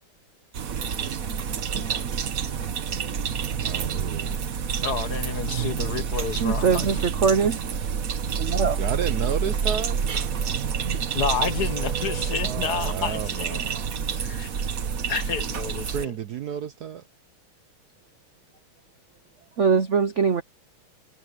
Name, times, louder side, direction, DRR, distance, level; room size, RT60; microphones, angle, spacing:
sound 1, 0.5-16.1, right 7 dB, 45° right, 1.4 m, -28 dB
voice 1, 3.6-4.4 8.8-10.0 12.4-13.8 15.9-17.0, right 8 dB, 60° right, 1.0 m, -32 dB
voice 2, 4.8-6.9 11.1-13.6 14.1-14.5 15.1-16.1, left 7 dB, 55° left, 1.4 m, -30 dB
sound 2, 5.5-5.8 6.2-6.6 6.9-7.3 7.7-8.0 9.2-12.2, equal, 5° right, 7.9 m, -56 dB
voice 3, 6.4-7.6 8.4-8.8 10.8-11.0 19.6-20.4, right 5 dB, 80° right, 0.6 m, -22 dB
omnidirectional pair, 2.4 m